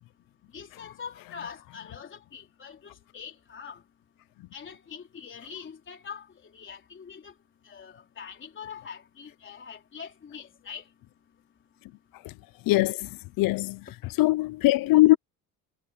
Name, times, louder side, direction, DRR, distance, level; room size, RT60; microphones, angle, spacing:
voice 1, 0.5-3.8 4.5-6.3 6.5-7.3 7.7-10.8, left 6 dB, 35° left, 3.7 m, -43 dB
voice 2, 12.7-13.1 13.4-13.8 14.2-15.2, left 18 dB, 70° left, 0.7 m, -21 dB
cardioid pair, 130°, 35 cm